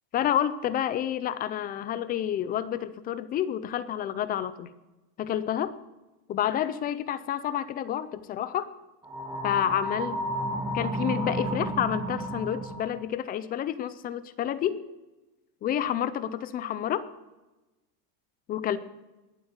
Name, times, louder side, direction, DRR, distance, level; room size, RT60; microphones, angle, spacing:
voice 1, 0.1-4.7 5.2-5.7 6.3-8.7 9.4-10.2 10.7-14.8 15.6-17.1 18.5-18.8, left 10 dB, 20° left, 16 dB, 0.4 m, -29 dB
sound 1, 9.0-13.0, right 1 dB, 5° right, 1.5 m, -32 dB
20.5 x 7.8 x 8.0 m, 1.1 s
supercardioid pair, 160°, 46 cm